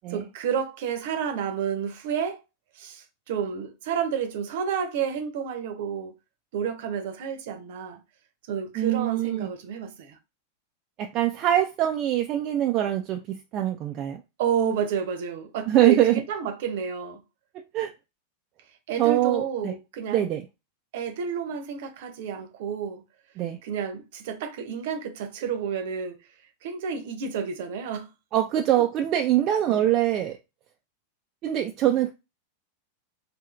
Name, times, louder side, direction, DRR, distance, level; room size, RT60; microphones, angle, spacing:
voice 1, 0.1-2.4 2.8-6.1 6.5-8.0 8.5-10.2 14.4-17.2 18.9-20.2 20.9-23.0 23.6-26.2 26.6-28.1 29.7-29.8, right 7 dB, 50° right, 0.8 m, -30 dB
voice 2, 8.8-9.5 11.0-14.2 15.7-16.2 17.7-17.9 19.0-19.7 20.1-20.5 23.4-23.6 28.3-30.4 31.4-32.1, right 12 dB, 35° right, 0.4 m, -23 dB
4.2 x 2.7 x 2.4 m
figure-of-eight pair, 90°, 0 cm